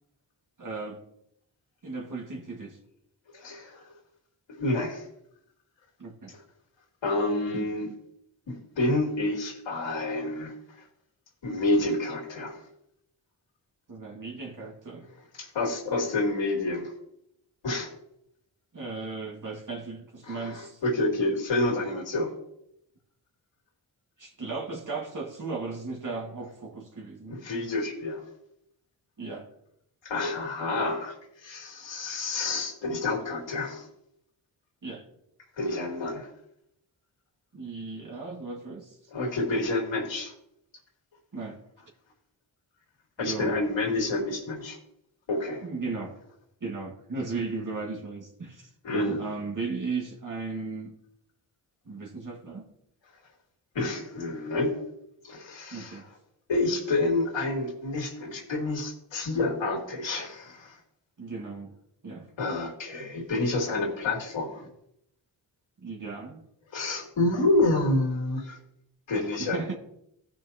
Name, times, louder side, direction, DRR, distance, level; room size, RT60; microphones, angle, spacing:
voice 1, 0.6-1.0 1.8-2.8 6.0-6.3 13.9-15.1 18.7-20.8 24.2-27.4 29.2-29.5 34.8-35.1 37.5-39.0 41.3-41.6 43.2-43.6 45.6-46.2 46.6-50.9 51.9-52.7 55.7-56.1 61.2-61.7 62.0-62.3 65.8-66.4 69.4-69.7, right 4 dB, 45° right, 1.9 m, -36 dB
voice 2, 3.3-3.9 4.6-5.0 7.0-7.9 8.5-10.8 11.4-12.6 15.4-16.9 17.6-17.9 20.2-22.3 27.3-28.2 30.0-33.9 35.6-36.3 39.1-40.3 43.2-44.8 45.3-45.6 48.8-49.2 53.7-54.8 55.2-56.0 56.5-60.8 62.4-64.7 66.7-68.6 69.1-69.7, left 2 dB, 80° left, 2.8 m, -28 dB
16.5 x 5.9 x 2.9 m
cardioid pair, 60°, 45 cm